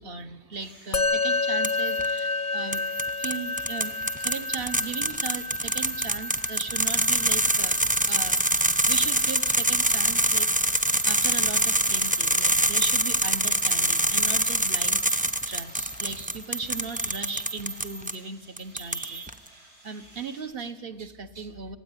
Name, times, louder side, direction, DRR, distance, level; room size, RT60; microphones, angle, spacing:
voice 1, 0.0-2.8 3.2-7.8 8.1-10.5 10.9-21.8, right 4 dB, 40° right, 10 dB, 1.1 m, -37 dB
sound 1, 0.6-20.4, right 1 dB, 70° right, 8.4 m, -53 dB
Musical instrument, 0.9-10.5, left 3 dB, 40° left, 0.7 m, -31 dB
sound 2, 1.6-2.1 2.7-18.2 18.6-19.3, right 1 dB, 10° right, 0.4 m, -25 dB
26.0 x 16.5 x 9.9 m, 1.3 s
omnidirectional pair, 1.8 m